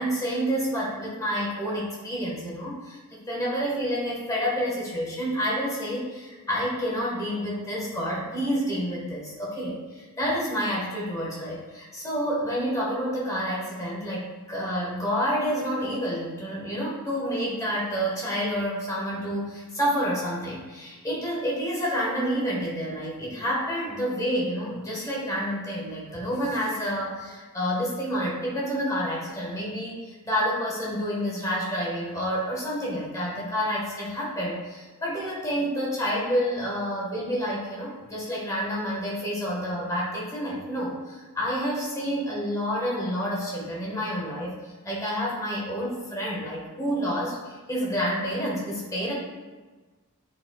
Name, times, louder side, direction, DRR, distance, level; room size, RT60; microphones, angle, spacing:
voice 1, 0.0-3.0 3.3-49.1, equal, 15° left, -5 dB, 1.7 m, -29 dB
9.2 x 4.6 x 2.5 m, 1.3 s
head